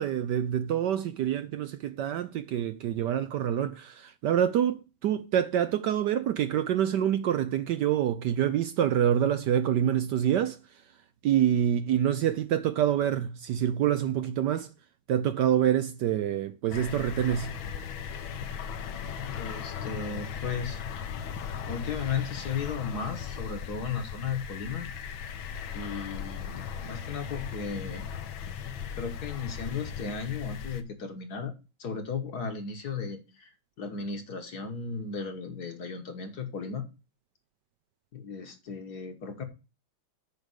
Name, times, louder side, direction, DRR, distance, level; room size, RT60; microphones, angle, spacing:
voice 1, 0.0-10.6 11.2-14.7 15.1-17.5, right 10 dB, 70° right, 1.1 m, -26 dB
sound 1, 16.7-30.8, left 7 dB, 75° left, 1.6 m, -37 dB
voice 2, 19.3-20.8 21.7-24.9 25.7-28.0 29.0-33.5 33.8-36.8 38.1-39.4, left 6 dB, 55° left, 1.6 m, -35 dB
8.2 x 5.1 x 6.4 m
omnidirectional pair, 2.2 m